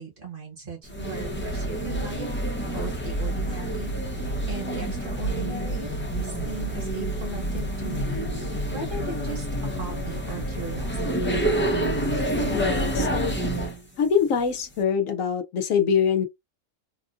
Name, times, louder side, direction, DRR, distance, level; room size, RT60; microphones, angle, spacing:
voice 1, 0.0-2.4 2.7-8.3 8.7-11.4 12.4-12.5, right 3 dB, 40° right, 1.3 m, -38 dB
sound 1, 0.9-13.8, right 1 dB, 15° left, 0.5 m, -28 dB
voice 2, 12.5-13.4 14.0-16.3, left 7 dB, 70° left, 0.9 m, -24 dB
3.5 x 2.4 x 2.4 m
omnidirectional pair, 1.5 m